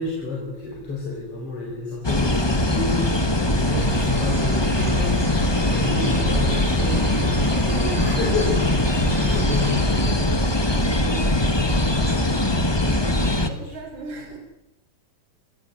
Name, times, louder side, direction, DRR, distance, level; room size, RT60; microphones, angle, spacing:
voice 1, 0.0-3.1 3.4-5.2 5.5-7.4 7.7-10.2 10.7-13.2, left 3 dB, 45° left, -1 dB, 5.4 m, -30 dB
sound 1, 2.0-13.5, left 1 dB, 15° left, 0.8 m, -21 dB
sound 2, 3.6-10.1, right 1 dB, 25° right, 2.3 m, -33 dB
voice 2, 8.6-9.4 13.4-14.4, right 2 dB, 65° right, 3 dB, 6.4 m, -40 dB
28.5 x 15.5 x 9.4 m, 1.0 s
omnidirectional pair, 3.6 m